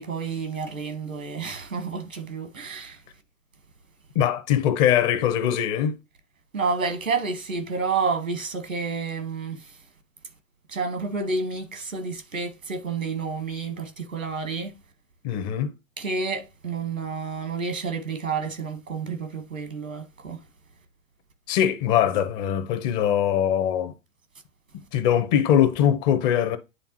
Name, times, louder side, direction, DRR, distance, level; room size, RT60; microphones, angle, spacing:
voice 1, 0.0-3.0 6.5-9.8 10.7-14.8 16.0-20.4, right 4 dB, 90° right, 1.5 m, -30 dB
voice 2, 4.1-6.0 15.2-15.7 21.5-23.9 24.7-26.6, left 10 dB, 35° left, 0.8 m, -22 dB
9.7 x 3.5 x 3.0 m
figure-of-eight pair, 105°, 39 cm